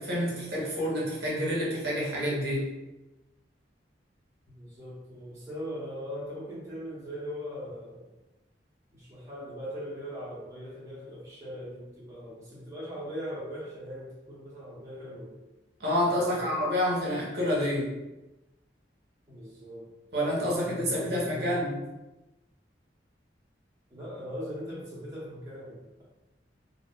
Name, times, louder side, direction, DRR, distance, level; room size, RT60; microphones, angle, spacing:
voice 1, 0.0-2.7 15.8-17.9 20.1-21.8, equal, 60° right, -5 dB, 0.8 m, -28 dB
voice 2, 4.5-8.1 8.9-15.3 16.1-16.6 19.3-19.9 20.3-21.6 23.9-26.0, equal, 15° right, -7 dB, 0.7 m, -40 dB
2.5 x 2.3 x 2.2 m, 1.0 s
head